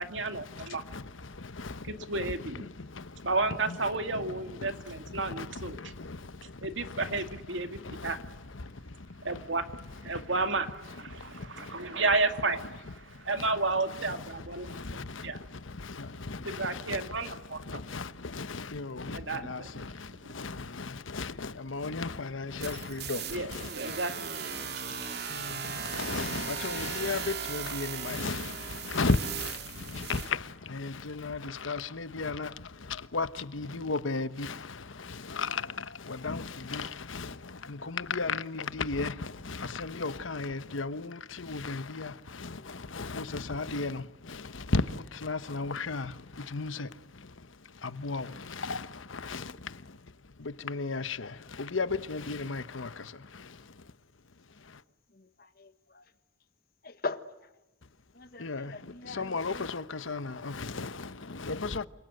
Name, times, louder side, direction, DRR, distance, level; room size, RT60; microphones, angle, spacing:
voice 1, 0.0-0.8 1.8-2.6 3.2-5.9 6.6-8.2 9.2-9.7 10.0-15.4 16.4-17.8 19.1-19.7 23.2-24.1 24.9-25.0 25.9-26.0, right 3 dB, 70° right, 2.2 m, -32 dB
voice 2, 0.5-1.9 2.8-3.3 5.3-5.5 5.7-6.5 6.8-7.0 7.8-8.1 8.6-8.7 11.1-11.9 14.6-17.1 17.7-24.0 24.6-24.7 25.3-46.9 47.8-49.8 50.4-53.5 58.4-61.9, left 3 dB, 85° left, 1.0 m, -35 dB
sound 1, 22.6-30.3, right 7 dB, 55° right, 2.6 m, -37 dB
voice 3, 55.1-56.1 56.8-57.2 58.1-59.7, left 3 dB, 50° left, 1.5 m, -41 dB
28.5 x 26.5 x 7.9 m
head